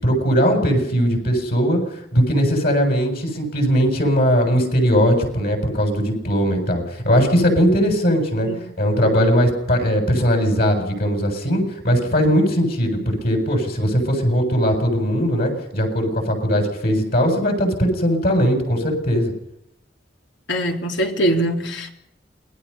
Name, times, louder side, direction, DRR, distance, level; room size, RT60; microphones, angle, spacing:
voice 1, 0.0-1.8 2.1-8.5 8.8-19.3, equal, 55° left, 7.6 m, -19 dB
voice 2, 20.5-21.9, right 1 dB, 80° left, 3.5 m, -22 dB
28.0 x 21.5 x 5.6 m
head